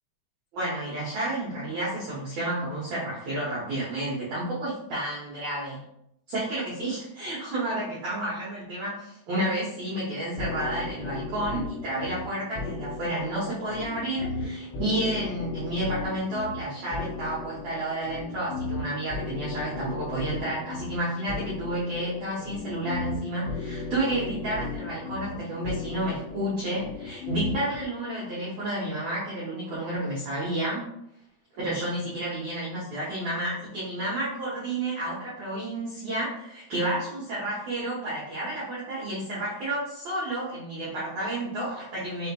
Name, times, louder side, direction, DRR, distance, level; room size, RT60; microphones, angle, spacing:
voice 1, 0.5-5.8 6.3-30.8 31.6-42.3, right 1 dB, 85° right, -7 dB, 1.5 m, -31 dB
sound 1, 10.4-27.8, left 3 dB, 90° left, 2.9 m, -36 dB
6.1 x 2.8 x 2.2 m, 0.75 s
omnidirectional pair, 4.8 m